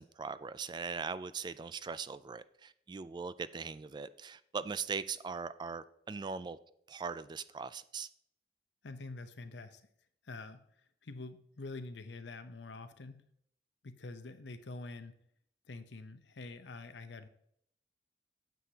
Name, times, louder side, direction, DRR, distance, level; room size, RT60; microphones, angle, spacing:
voice 1, 0.0-6.6 6.9-8.1, right 5 dB, 25° right, 0.3 m, -40 dB
voice 2, 8.8-9.8 10.2-13.2 13.8-15.1 15.7-17.3, left 3 dB, 85° left, 0.7 m, -46 dB
9.1 x 7.8 x 2.8 m
head